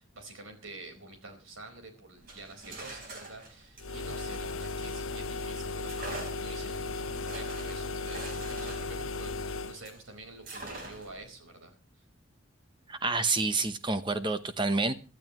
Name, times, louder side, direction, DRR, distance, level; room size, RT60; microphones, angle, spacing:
voice 1, 0.0-12.0, right 2 dB, 85° right, 5 dB, 4.6 m, -48 dB
sound 1, 2.2-5.2 5.8-10.0 10.4-11.2, right 2 dB, 45° right, 4.3 m, -45 dB
sound 2, 3.8-9.8, left 3 dB, 80° left, 0.9 m, -36 dB
voice 2, 12.9-14.9, right 3 dB, 25° right, 10 dB, 0.9 m, -28 dB
24.0 x 13.0 x 3.1 m, 0.34 s
head